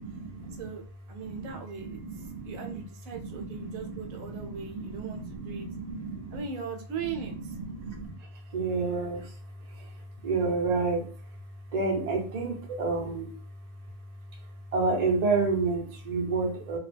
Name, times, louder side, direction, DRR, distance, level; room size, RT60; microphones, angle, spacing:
voice 1, 0.0-0.7 1.2-2.8 3.1-6.4 7.0-11.4 11.7-13.4 14.3-16.8, right 3 dB, 50° right, 1 dB, 0.5 m, -31 dB
voice 2, 0.6-5.7 6.3-7.6, right 5 dB, 75° right, 4 dB, 1.0 m, -39 dB
2.7 x 2.2 x 3.3 m, 0.40 s
omnidirectional pair, 1.5 m